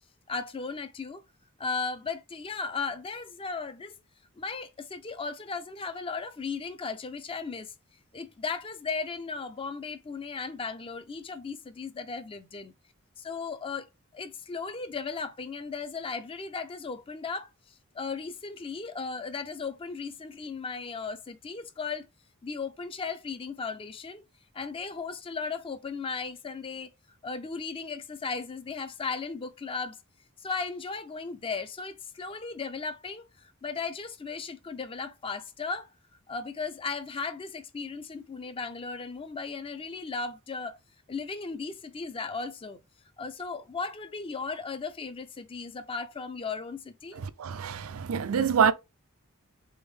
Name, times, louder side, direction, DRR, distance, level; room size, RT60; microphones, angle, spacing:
voice 1, 0.3-1.2 1.6-3.9 4.4-7.7 8.1-12.7 13.2-17.5 17.9-22.1 22.4-24.2 24.5-26.9 27.2-30.0 30.4-35.9 36.3-40.8 41.1-42.8 43.2-47.2, left 4 dB, 25° left, 0.4 m, -36 dB
voice 2, 47.2-48.7, right 7 dB, 80° right, 0.4 m, -26 dB
3.5 x 3.5 x 3.2 m
head